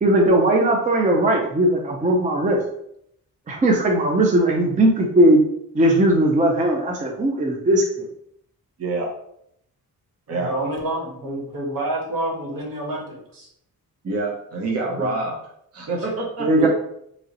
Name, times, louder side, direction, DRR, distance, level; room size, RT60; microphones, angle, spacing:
voice 1, 0.0-2.6 3.5-5.4 5.7-7.8 16.4-16.7, right 1 dB, 20° right, 0 dB, 0.4 m, -18 dB
voice 2, 8.8-9.1 10.3-10.5 14.0-15.4 15.7-16.5, right 2 dB, 40° right, -2 dB, 0.8 m, -26 dB
voice 3, 10.3-13.5 14.9-15.1 16.5-16.7, right 1 dB, 65° right, -2 dB, 1.3 m, -28 dB
3.1 x 2.8 x 3.7 m, 0.73 s
wide cardioid pair, 170°, 37 cm